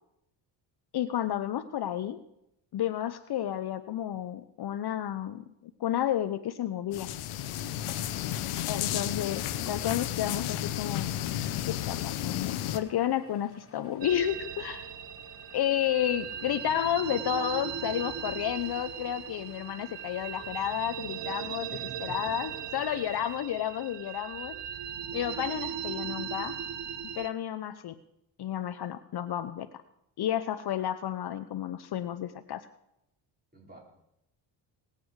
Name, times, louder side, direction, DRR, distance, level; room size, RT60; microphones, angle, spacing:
voice 1, 0.9-2.2 2.7-5.4 5.8-7.1 8.7-11.1 11.6-14.9 15.5-21.7 22.0-24.5 25.1-26.5 27.2-27.9 28.4-29.7 30.2-32.7, left 11 dB, 50° left, 11 dB, 0.8 m, -31 dB
sound 1, 6.9-12.8, left 12 dB, 80° left, 1.1 m, -32 dB
sound 2, 10.5-23.4, left 3 dB, 25° left, 2.1 m, -56 dB
sound 3, 14.0-27.3, right 8 dB, 55° right, 0.9 m, -38 dB
voice 2, 21.7-22.4 24.0-24.1 33.5-33.8, right 3 dB, 20° right, -1 dB, 5.1 m, -48 dB
19.5 x 8.4 x 4.8 m, 0.82 s
supercardioid pair, 75°, 50 cm